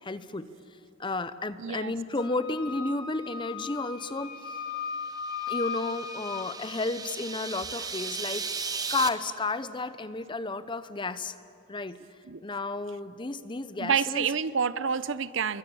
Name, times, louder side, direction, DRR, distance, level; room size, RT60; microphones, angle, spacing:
voice 1, 0.0-0.5 1.0-4.6 5.5-8.5 8.9-11.4 11.7-12.0 12.4-14.3, left 3 dB, 25° left, 13 dB, 0.7 m, -32 dB
voice 2, 1.6-1.9 12.3-12.4 13.8-15.6, right 6 dB, 65° right, 16 dB, 0.6 m, -28 dB
Wind instrument woodwind instrument, 2.2-6.5, left 5 dB, 90° left, 4.1 m, -37 dB
sound 1, 4.9-9.1, right 5 dB, 20° right, 1.0 m, -36 dB
27.5 x 22.5 x 7.0 m, 2.5 s
head